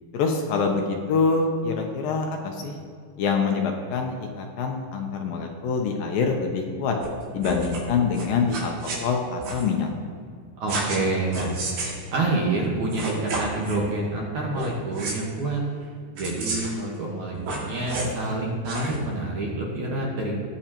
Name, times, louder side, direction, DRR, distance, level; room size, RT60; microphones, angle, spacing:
voice 1, 0.1-2.8 3.2-7.0 7.3-9.9, left 5 dB, 75° left, 3 dB, 2.3 m, -25 dB
sound 1, 7.0-7.1 7.4-7.8 8.1-9.0 9.4-9.7 10.7-11.0 11.3-12.0 12.6-12.7 12.9-13.8 14.5-14.7 14.9-15.1 16.2-16.8 17.3-18.2 18.7-19.0, right 2 dB, 80° right, 4.1 m, -31 dB
voice 2, 10.6-11.6 12.1-15.6 16.1-20.4, right 2 dB, 60° right, -3 dB, 2.3 m, -27 dB
19.0 x 7.1 x 2.9 m, 2.1 s
omnidirectional pair, 4.5 m